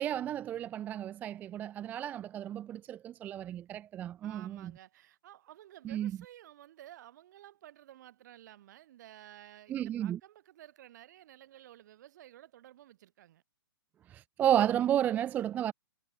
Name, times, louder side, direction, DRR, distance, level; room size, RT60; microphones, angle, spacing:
voice 1, 0.0-4.7 5.8-6.1 9.7-10.2 14.1-15.7, right 11 dB, 10° right, 0.4 m, -32 dB
voice 2, 4.2-13.4, right 13 dB, 45° right, 4.8 m, -54 dB
figure-of-eight pair, 120°, 14 cm